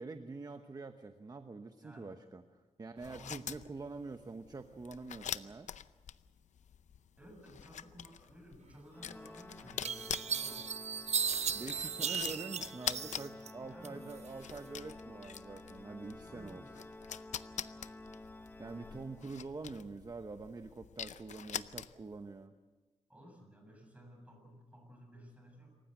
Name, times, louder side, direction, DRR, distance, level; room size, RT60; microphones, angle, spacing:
voice 1, 0.0-5.7 11.5-16.6 18.6-22.5, right 3 dB, 35° right, 8 dB, 1.0 m, -46 dB
voice 2, 1.8-2.1 2.9-3.4 7.2-10.7 13.6-14.1 16.2-16.8 21.1-21.2 23.1-25.8, equal, 10° right, 3 dB, 7.2 m, -55 dB
sound 1, 3.0-22.2, left 9 dB, 85° left, 0.6 m, -45 dB
Organ, 8.9-19.6, left 2 dB, 15° left, 0.8 m, -52 dB
sound 2, 9.1-9.2 9.8-13.5 13.8-14.6, right 7 dB, 65° right, 0.8 m, -36 dB
27.0 x 15.0 x 7.7 m, 1.3 s
wide cardioid pair, 95°, 12 cm